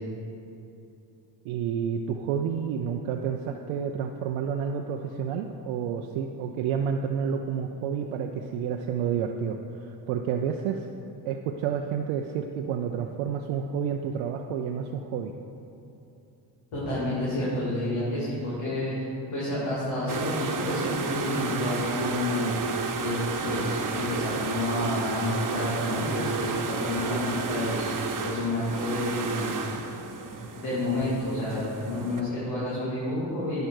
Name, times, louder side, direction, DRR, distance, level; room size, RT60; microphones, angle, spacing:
voice 1, 1.4-10.9 11.3-15.3, right 7 dB, 90° right, 4 dB, 0.6 m, -30 dB
voice 2, 16.7-18.9 19.3-22.5 23.0-23.2 23.4-27.9 28.2-29.5 30.6-33.7, left 1 dB, 80° left, -9 dB, 2.5 m, -29 dB
sound 1, 20.1-32.2, right 5 dB, 40° right, 1.1 m, -32 dB
10.5 x 5.8 x 6.2 m, 2.8 s
supercardioid pair, 50°, 48 cm